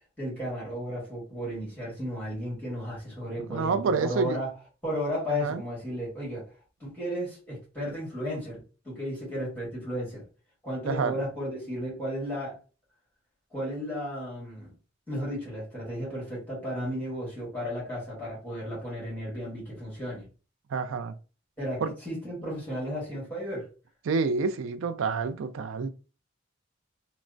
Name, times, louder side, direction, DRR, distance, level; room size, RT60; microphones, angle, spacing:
voice 1, 0.2-4.5 4.8-6.4 6.8-10.2 10.6-12.6 13.5-14.7 15.1-20.3 21.6-23.7, equal, 10° left, 1.5 m, -34 dB
voice 2, 3.5-4.4 5.3-5.6 10.8-11.2 20.7-21.1 21.8-21.9 24.0-25.9, right 4 dB, 85° right, 0.4 m, -28 dB
3.2 x 2.0 x 2.4 m
head